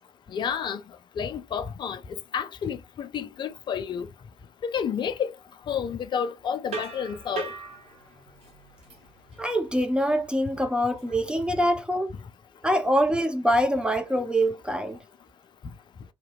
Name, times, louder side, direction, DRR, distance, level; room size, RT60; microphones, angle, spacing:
voice 1, 0.3-0.8 1.2-2.0 2.3-4.1 4.6-5.3 5.7-7.5, left 7 dB, 35° left, 0.4 m, -30 dB
sound 1, 6.7-11.8, right 4 dB, 50° right, 1.6 m, -40 dB
voice 2, 9.4-12.1 12.6-15.0, equal, 5° right, 0.6 m, -24 dB
2.8 x 2.8 x 2.3 m
figure-of-eight pair, 50°, 14 cm